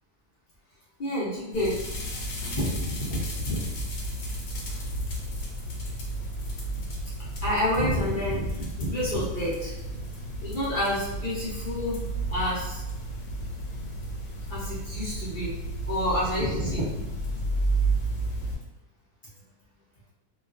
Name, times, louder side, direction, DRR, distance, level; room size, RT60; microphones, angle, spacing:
voice 1, 1.0-1.8 2.6-3.6 7.4-9.7 10.4-12.0 12.3-12.8 14.5-15.5 15.9-17.0, equal, 55° left, -8 dB, 0.5 m, -28 dB
sound 1, 1.5-18.5, right 1 dB, 85° left, 1.1 m, -32 dB
2.3 x 2.3 x 2.3 m, 0.97 s
omnidirectional pair, 1.5 m